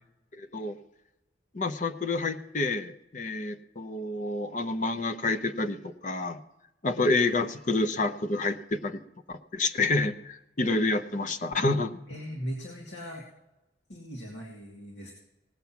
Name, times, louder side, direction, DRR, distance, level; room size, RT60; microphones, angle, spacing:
voice 1, 0.3-0.8 1.5-6.4 6.8-9.0 9.3-12.0, left 2 dB, 45° left, 9 dB, 0.7 m, -28 dB
voice 2, 12.1-13.3 13.9-15.1, equal, 80° left, -1 dB, 2.2 m, -39 dB
18.0 x 7.6 x 5.8 m, 0.95 s
head